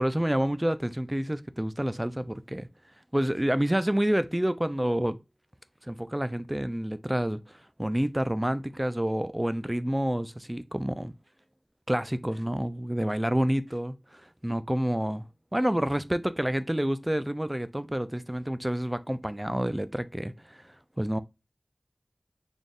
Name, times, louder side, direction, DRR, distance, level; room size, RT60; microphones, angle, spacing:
voice 1, 0.0-2.7 3.1-5.2 5.9-11.1 11.9-15.3 15.5-20.6 21.0-21.2, right 1 dB, 20° right, 0.3 m, -28 dB
4.1 x 3.4 x 2.3 m
wide cardioid pair, 45°, 0 cm